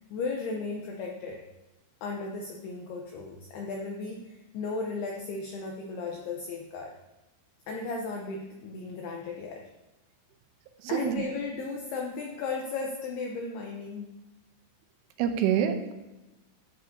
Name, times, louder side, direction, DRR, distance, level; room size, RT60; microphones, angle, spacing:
voice 1, 0.1-1.4 2.0-6.9 7.7-9.6 10.9-14.1, left 4 dB, 85° left, 1 dB, 2.3 m, -35 dB
voice 2, 10.9-11.2 15.2-15.9, right 9 dB, 80° right, 7 dB, 3.2 m, -26 dB
13.0 x 7.9 x 2.7 m, 1.0 s
omnidirectional pair, 5.6 m